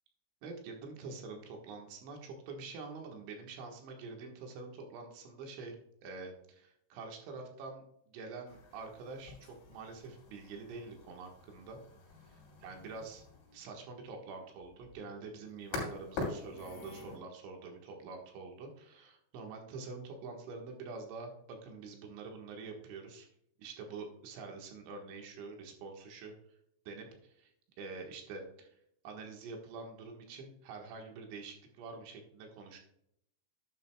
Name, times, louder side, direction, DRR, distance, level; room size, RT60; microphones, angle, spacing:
voice 1, 0.4-5.8 6.0-11.8 12.3-13.2 13.5-23.3 23.6-26.3 26.9-27.5 27.8-28.8 29.0-32.8, right 4 dB, 70° right, 2 dB, 3.6 m, -46 dB
sound 1, 8.5-17.2, left 3 dB, 70° left, 5.4 m, -46 dB
11.5 x 9.4 x 2.2 m, 0.75 s
omnidirectional pair, 5.7 m